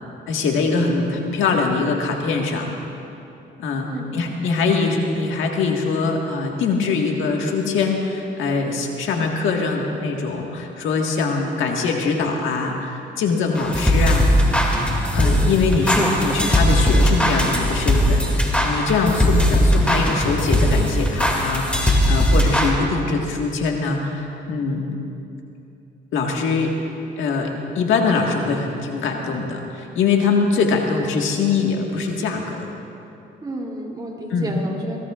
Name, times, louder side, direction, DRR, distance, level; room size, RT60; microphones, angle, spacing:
voice 1, 0.3-2.7 3.6-14.3 15.1-24.9 26.1-26.7 27.2-32.7 34.3-34.5, left 4 dB, 80° left, 1 dB, 1.7 m, -23 dB
voice 2, 3.8-4.2 33.4-35.0, right 1 dB, 20° right, -2 dB, 2.9 m, -30 dB
sound 1, 13.5-22.7, equal, 5° left, 2.4 m, -19 dB
23.5 x 17.0 x 2.5 m, 2.8 s
cardioid pair, 90°, 20 cm